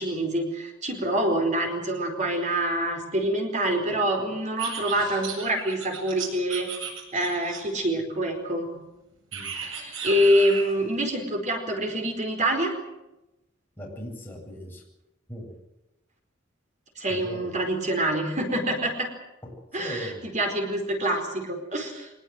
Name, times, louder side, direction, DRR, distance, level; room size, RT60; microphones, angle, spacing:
voice 1, 0.0-6.7 7.1-8.7 9.6-12.7 17.0-19.1 19.7-22.1, right 1 dB, 40° right, 4 dB, 4.7 m, -26 dB
sound 1, 4.6-7.8 9.3-10.8, right 6 dB, 80° right, 8.0 m, -35 dB
voice 2, 13.8-14.8 15.3-15.5 17.1-17.4 19.4-19.5 19.8-20.2, equal, 10° left, -2 dB, 7.9 m, -38 dB
24.0 x 21.0 x 7.9 m, 0.95 s
head